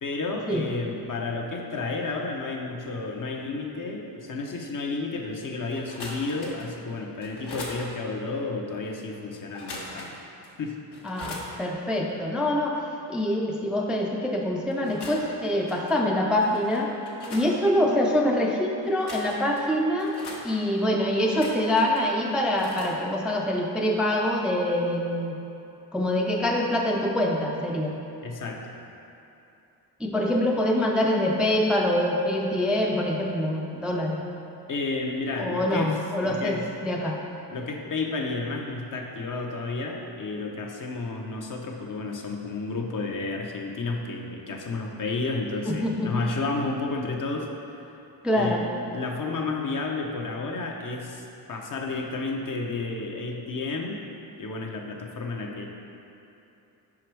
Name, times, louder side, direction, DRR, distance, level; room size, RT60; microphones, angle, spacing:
voice 1, 0.0-10.1 10.6-10.8 28.2-28.7 34.7-36.7 37.5-47.5 47.7-47.9 48.3-54.0 54.4-55.7, left 3 dB, 50° left, 1 dB, 0.7 m, -31 dB
sound 1, 5.7-6.7 7.2-7.8 9.5-10.2 10.4-10.5 10.9-11.5 14.7-15.3 15.7-15.9 16.4-17.5 18.8-19.6 20.0-20.4 21.2-22.0 22.6-22.9, left 2 dB, 70° left, 1.1 m, -40 dB
voice 2, 11.0-12.8 13.1-16.9 17.3-20.2 20.4-25.4 25.9-27.9 30.0-34.2 35.4-37.2 45.6-46.1 48.2-48.6, left 1 dB, ahead, -1 dB, 0.4 m, -25 dB
5.1 x 4.8 x 4.5 m, 2.9 s
cardioid pair, 95°, 42 cm